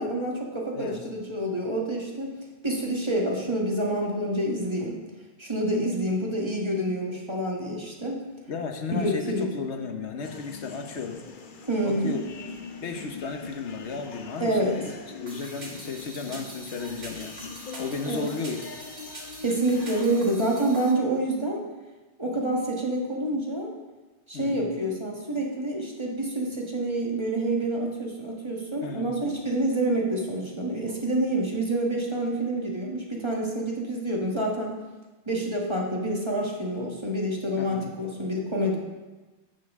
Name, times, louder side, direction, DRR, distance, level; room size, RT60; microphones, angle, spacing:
voice 1, 0.0-2.3 2.6-5.0 5.4-8.2 8.9-9.5 11.7-12.2 14.4-14.7 18.1-18.3 19.4-21.6 22.2-23.7 24.3-34.7 35.3-38.8, right 1 dB, 25° right, -2 dB, 1.5 m, -27 dB
voice 2, 0.7-1.1 8.5-11.2 11.8-12.2 12.8-14.9 15.2-17.4 17.8-18.6 24.3-24.6 28.8-29.1 37.6-37.9, left 4 dB, 90° left, 5 dB, 1.2 m, -34 dB
sound 1, 10.2-20.0, left 5 dB, 50° left, 0.9 m, -43 dB
sound 2, 15.3-20.9, right 2 dB, 70° right, 1.9 m, -44 dB
11.5 x 7.7 x 3.6 m, 1.2 s
omnidirectional pair, 1.1 m